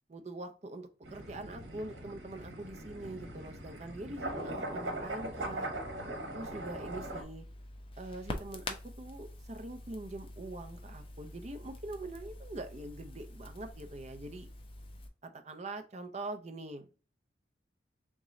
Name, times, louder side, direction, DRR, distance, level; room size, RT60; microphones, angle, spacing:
voice 1, 0.1-5.7 6.3-7.5 8.0-14.5 15.2-16.9, right 2 dB, 35° right, 7 dB, 0.6 m, -43 dB
sound 1, 1.0-7.2, right 1 dB, 80° right, 1.2 m, -40 dB
Crackle, 6.8-15.1, left 2 dB, 30° left, 0.6 m, -46 dB
3.6 x 3.1 x 3.8 m, 0.36 s
head